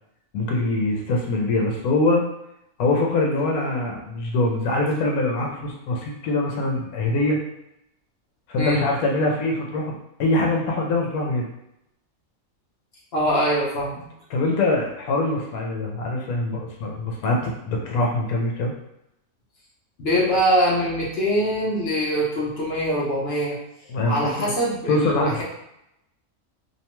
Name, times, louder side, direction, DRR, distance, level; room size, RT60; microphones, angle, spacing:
voice 1, 0.3-2.2 2.8-7.4 8.5-11.5 14.3-18.7 23.9-24.5 24.9-25.4, left 2 dB, 85° left, 0 dB, 1.1 m, -23 dB
voice 2, 13.1-14.0 20.0-23.6 24.1-25.4, equal, 55° left, -5 dB, 0.8 m, -23 dB
2.8 x 2.2 x 2.9 m, 0.83 s
omnidirectional pair, 1.5 m